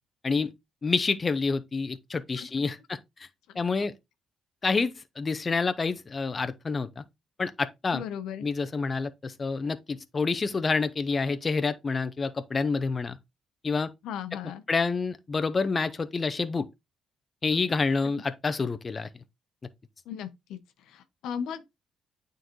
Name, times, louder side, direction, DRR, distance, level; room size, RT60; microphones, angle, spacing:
voice 1, 0.8-3.3 3.6-3.9 4.6-7.0 7.4-8.0 8.4-13.2 13.6-13.9 14.7-16.7 17.4-19.1, left 4 dB, 35° left, 0.6 m, -28 dB
voice 2, 7.9-8.4 14.0-14.6 20.1-20.6 20.9-21.6, left 8 dB, 85° left, 0.9 m, -36 dB
9.0 x 3.9 x 3.0 m
cardioid pair, 90°, 0 cm